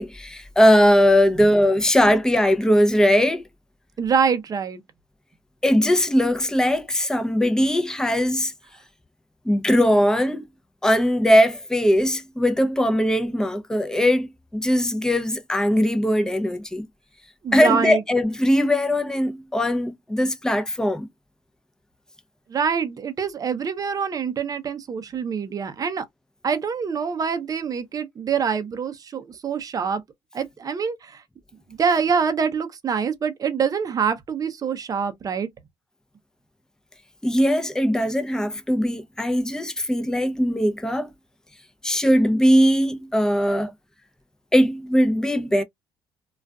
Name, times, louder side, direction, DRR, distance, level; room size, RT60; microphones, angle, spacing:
voice 1, 0.0-3.4 5.6-8.5 9.4-10.5 10.8-14.3 14.5-16.8 17.5-21.1 37.2-41.1 41.8-43.7 44.5-45.6, equal, 5° left, 0.6 m, -20 dB
voice 2, 4.0-4.8 17.4-18.0 22.5-26.0 26.4-30.0 30.3-31.2 31.7-35.5 43.6-43.7, right 6 dB, 40° right, 0.6 m, -25 dB
2.4 x 2.3 x 2.3 m
supercardioid pair, 75°, 10 cm